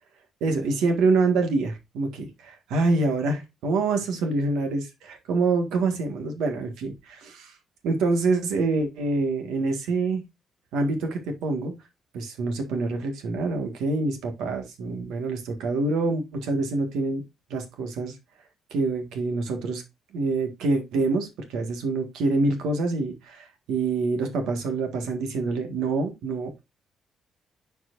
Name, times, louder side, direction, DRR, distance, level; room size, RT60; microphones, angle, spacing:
voice 1, 0.4-7.5 7.8-10.2 10.7-11.7 12.1-17.2 17.5-18.2 18.7-19.8 20.1-26.6, right 3 dB, 90° right, 1.8 m, -26 dB
9.8 x 4.6 x 2.6 m
cardioid pair, 90°, 0 cm